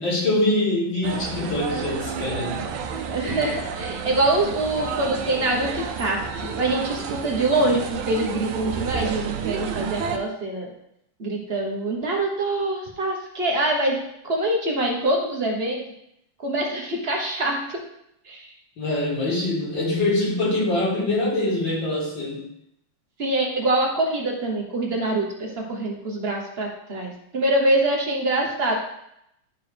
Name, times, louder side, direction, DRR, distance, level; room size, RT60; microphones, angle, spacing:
voice 1, 0.0-2.8 18.8-22.5, left 2 dB, 60° left, -4 dB, 2.5 m, -24 dB
sound 1, 1.0-10.2, right 6 dB, 80° right, 1.5 m, -31 dB
voice 2, 3.1-10.7 11.2-14.0 14.2-15.8 16.4-17.8 18.3-18.5 23.2-28.7, right 2 dB, 35° right, 0 dB, 1.1 m, -24 dB
10.5 x 4.6 x 3.4 m, 0.78 s
omnidirectional pair, 2.3 m